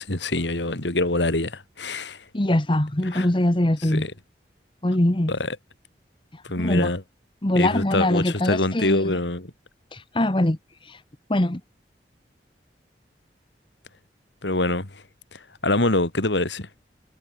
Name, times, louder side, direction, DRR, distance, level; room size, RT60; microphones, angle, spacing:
voice 1, 0.0-2.2 3.0-3.3 3.8-4.1 5.3-5.6 6.5-7.0 7.5-9.5 14.4-14.9 15.3-16.7, left 2 dB, 85° left, 2.9 m, -25 dB
voice 2, 2.3-4.0 4.8-5.3 6.6-6.9 7.4-9.0 10.1-10.6 11.3-11.6, left 1 dB, 30° left, 1.2 m, -22 dB
head